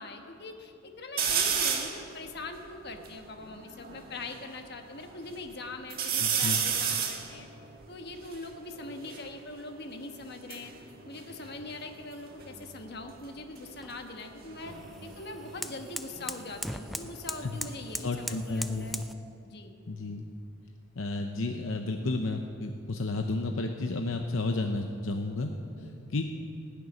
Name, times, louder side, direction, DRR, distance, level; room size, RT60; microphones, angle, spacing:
voice 1, 0.0-7.5 7.9-10.7 11.0-14.7 15.0-19.0 19.4-19.7 25.8-26.0, left 2 dB, 50° left, 5 dB, 1.3 m, -42 dB
sound 1, 1.2-2.0 2.6-2.7 2.8-4.4 4.9-5.5 5.9-9.3 10.2-12.1 12.4-12.9 14.4-17.1 17.4-18.2, right 7 dB, 45° right, 1.5 m, -33 dB
voice 2, 6.2-6.6 17.4-17.6 18.0-19.0 19.9-20.2 21.0-25.5 25.8-26.2, left 2 dB, 70° left, 4 dB, 0.7 m, -32 dB
sound 2, 12.4-19.1, equal, ahead, 0.3 m, -41 dB
17.5 x 6.8 x 9.6 m, 2.6 s
head